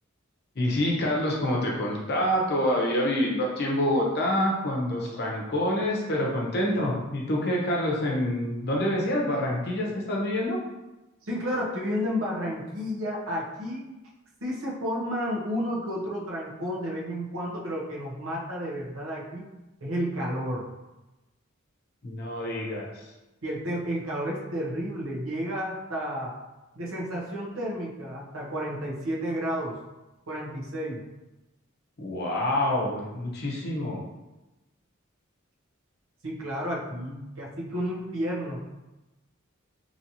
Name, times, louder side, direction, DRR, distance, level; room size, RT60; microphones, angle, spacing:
voice 1, 0.5-10.6 22.0-23.1 32.0-34.0, left 1 dB, 55° left, -2 dB, 0.8 m, -27 dB
voice 2, 11.3-13.8 14.4-19.5 19.8-20.7 23.4-26.3 26.7-29.8 30.3-31.0 36.2-38.6, equal, 85° right, -4 dB, 0.9 m, -31 dB
3.0 x 2.7 x 2.8 m, 1.0 s
head